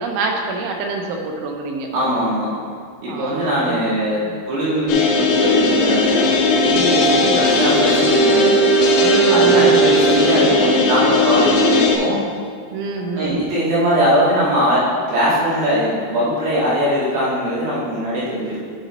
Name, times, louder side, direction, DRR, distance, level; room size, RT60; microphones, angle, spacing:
voice 1, 0.0-1.9 3.1-3.9 4.3-4.4 6.7-7.0 7.2-7.4 9.0-9.9 12.7-13.5, right 2 dB, 80° right, 2 dB, 3.2 m, -26 dB
voice 2, 1.9-2.5 3.0-4.2 4.5-8.5 9.3-12.2 13.1-14.8 15.1-18.6, equal, 60° right, -8 dB, 3.5 m, -21 dB
sound 1, 4.9-12.0, left 1 dB, 85° left, 3.2 m, -16 dB
11.5 x 4.0 x 4.0 m, 2.1 s
omnidirectional pair, 5.5 m